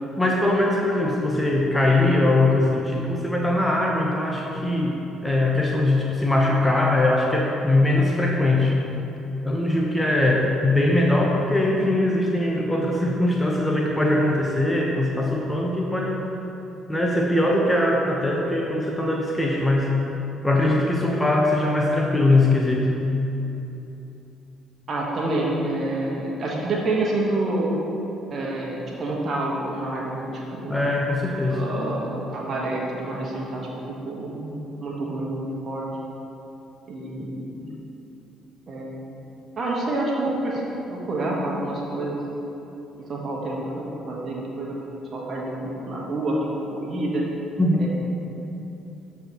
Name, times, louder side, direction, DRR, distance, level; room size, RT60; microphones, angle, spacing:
voice 1, 0.2-8.7 9.4-16.3 16.9-20.0 20.4-22.9 30.7-31.6 47.6-47.9, left 2 dB, 10° left, -1 dB, 1.0 m, -21 dB
voice 2, 24.9-27.7 28.3-30.8 31.5-35.9 36.9-37.7 38.7-39.0 39.6-40.6 40.9-42.2 43.0-44.8 45.1-46.4 46.7-47.3 47.8-47.9, right 2 dB, 40° right, -4 dB, 1.4 m, -28 dB
13.0 x 4.7 x 3.0 m, 3.0 s
figure-of-eight pair, 50°, 0 cm